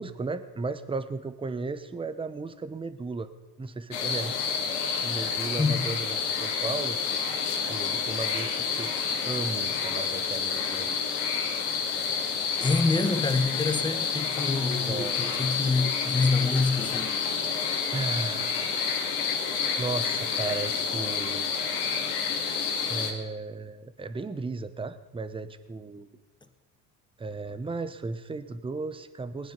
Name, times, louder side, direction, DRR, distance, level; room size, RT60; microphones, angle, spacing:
voice 1, 0.0-3.3 3.6-4.4 5.0-7.0 7.7-8.9 9.2-11.0 14.8-15.5 17.9-18.8 19.8-21.5 22.9-26.1 27.2-29.5, right 3 dB, 10° right, 0.9 m, -35 dB
sound 1, 3.9-23.1, left 6 dB, 70° left, 2.1 m, -29 dB
voice 2, 12.6-17.2, left 3 dB, 10° left, 1.2 m, -26 dB
20.0 x 9.7 x 5.3 m
hypercardioid pair, 75°, 48 cm